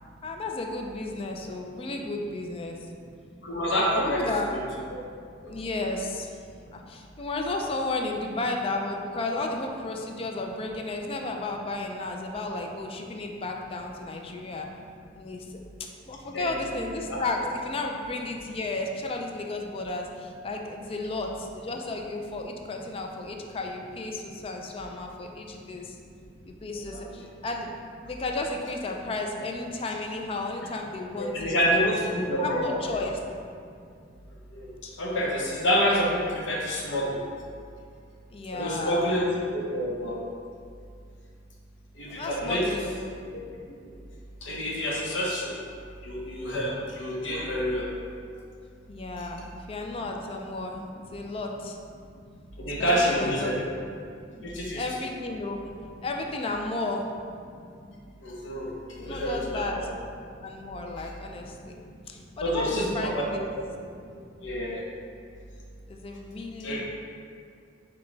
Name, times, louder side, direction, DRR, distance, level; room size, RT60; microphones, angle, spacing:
voice 1, 0.2-2.8 3.9-4.5 5.5-6.3 6.7-14.7 15.2-15.6 16.1-26.0 26.5-27.7 28.0-31.9 32.3-33.2 34.8-34.9 38.3-39.1 42.1-43.0 48.9-50.8 51.1-51.8 52.8-53.6 54.4-55.6 56.0-57.1 59.0-63.5 65.9-66.8, left 2 dB, 30° left, 2 dB, 0.4 m, -33 dB
voice 2, 3.4-4.2 4.5-4.6 5.4-5.5 16.3-16.8 17.1-17.2 26.9-27.0 31.2-32.7 34.5-34.7 35.0-37.2 38.5-39.3 39.5-40.2 42.0-42.7 43.3-43.4 44.4-45.5 46.0-47.9 49.2-49.3 52.6-53.7 54.4-54.8 58.2-59.9 62.4-63.2 63.6-63.7 64.4-64.8 66.6-66.8, equal, 85° left, -3 dB, 0.8 m, -28 dB
5.0 x 2.2 x 3.8 m, 2.4 s
head